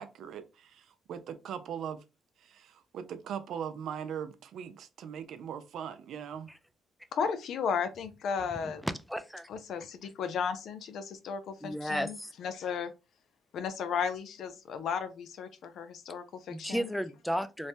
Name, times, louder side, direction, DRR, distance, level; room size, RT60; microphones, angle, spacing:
voice 1, 0.0-2.0 2.4-6.5, right 8 dB, 75° right, 0.4 m, -40 dB
voice 2, 7.1-8.8 9.5-12.9 13.5-16.9, left 6 dB, 70° left, 0.4 m, -34 dB
voice 3, 8.8-9.5 11.6-12.3 16.5-17.7, equal, ahead, 0.3 m, -34 dB
3.1 x 2.1 x 2.7 m
cardioid pair, 90°, 0 cm